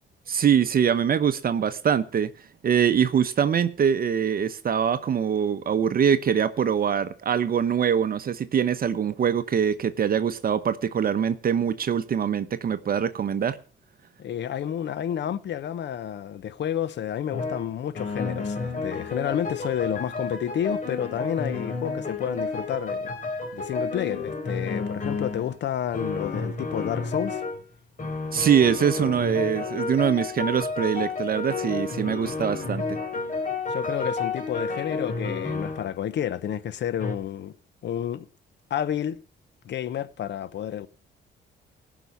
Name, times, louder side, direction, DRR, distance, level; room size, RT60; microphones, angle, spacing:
voice 1, 0.3-2.3 2.6-13.6 28.3-33.0, right 8 dB, 50° right, 0.9 m, -23 dB
voice 2, 14.2-23.2 23.5-27.4 33.7-37.5 37.8-38.3 38.7-39.2 39.6-40.9, left 10 dB, 65° left, 0.9 m, -30 dB
sound 1, 17.3-17.7 17.9-25.5 25.9-27.6 28.0-35.9 37.0-37.1, left 3 dB, 40° left, 3.6 m, -31 dB
17.0 x 6.1 x 6.9 m
cardioid pair, 90°, 20 cm